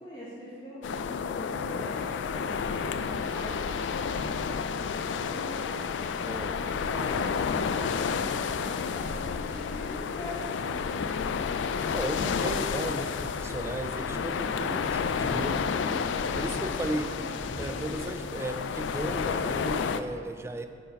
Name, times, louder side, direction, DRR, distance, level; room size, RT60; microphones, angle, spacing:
voice 1, 0.0-2.0 2.3-6.0 6.5-11.0 14.3-17.8, equal, 25° left, -8 dB, 1.1 m, -43 dB
sound 1, 0.8-20.0, left 6 dB, 80° left, 0.3 m, -31 dB
sound 2, 1.9-19.5, right 1 dB, 60° right, 0.8 m, -49 dB
voice 2, 6.2-6.6 11.9-15.8 16.4-17.1 17.6-20.7, right 1 dB, 15° right, 8 dB, 0.3 m, -35 dB
sound 3, 14.0-14.7 17.3-17.8 18.6-19.8, equal, 5° left, 1.7 m, -46 dB
9.1 x 4.6 x 5.2 m, 2.1 s
head